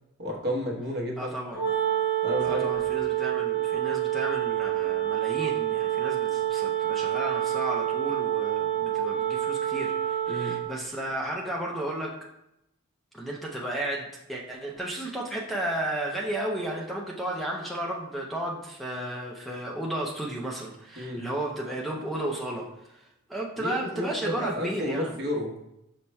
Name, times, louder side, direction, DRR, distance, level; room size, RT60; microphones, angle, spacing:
voice 1, 0.2-1.4 2.2-2.7 10.3-10.6 21.0-21.2 23.6-24.1 24.4-25.5, left 1 dB, 55° right, -1 dB, 1.0 m, -31 dB
voice 2, 1.2-1.7 2.4-12.1 13.1-25.1, right 1 dB, ahead, -2 dB, 0.5 m, -33 dB
Wind instrument woodwind instrument, 1.5-10.7, right 12 dB, 55° left, 0.8 m, -27 dB
5.5 x 2.1 x 4.4 m, 0.84 s
head